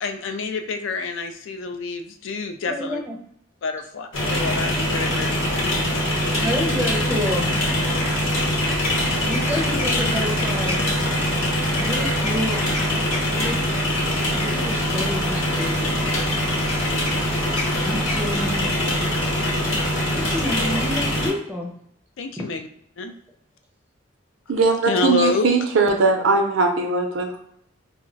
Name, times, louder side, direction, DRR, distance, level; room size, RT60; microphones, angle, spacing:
voice 1, 0.0-3.0 3.6-5.7 19.4-19.5 22.2-22.7 23.0-23.1 24.9-25.5, left 3 dB, 70° left, 7 dB, 0.4 m, -27 dB
voice 2, 2.7-3.2 6.4-7.5 9.3-10.9 11.7-12.7 13.3-13.6 14.4-15.8 17.8-18.7 20.1-21.7, equal, 10° right, -1 dB, 0.5 m, -28 dB
sound 1, 4.1-21.3, equal, 85° left, 0.8 m, -23 dB
sound 2, 5.0-5.7 6.1-6.4 7.0-19.0, left 2 dB, 35° left, 0.9 m, -35 dB
voice 3, 24.5-27.4, right 3 dB, 70° right, 3 dB, 0.5 m, -20 dB
2.3 x 2.1 x 3.8 m, 0.70 s
head